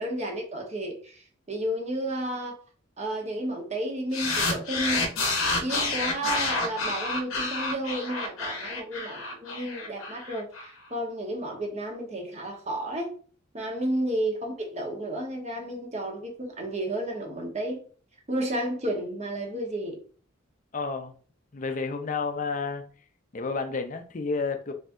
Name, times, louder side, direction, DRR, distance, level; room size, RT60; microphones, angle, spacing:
voice 1, 0.0-2.6 3.0-5.1 5.6-13.1 13.5-17.8 18.3-20.0, right 1 dB, 35° right, 1.1 m, -32 dB
sound 1, 4.1-10.7, left 3 dB, 90° left, 1.0 m, -29 dB
voice 2, 20.7-21.1 21.5-22.8 23.3-24.7, left 4 dB, 40° left, 0.5 m, -30 dB
4.2 x 3.5 x 2.6 m
head